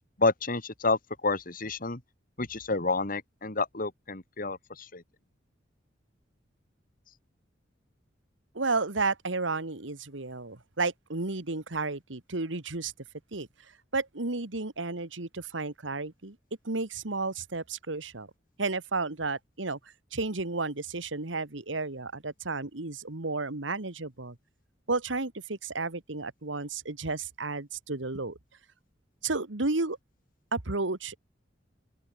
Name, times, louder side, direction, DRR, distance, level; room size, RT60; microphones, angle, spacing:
voice 1, 0.2-1.0 1.2-2.0 2.4-4.6 4.9-5.0, left 3 dB, 50° left, 2.3 m, -29 dB
voice 2, 8.6-12.9 13.3-13.5 13.9-16.4 16.6-18.3 18.6-19.8 20.1-24.4 24.9-28.4 29.2-30.0 30.5-31.2, right 3 dB, 85° right, 1.8 m, -32 dB
open air
head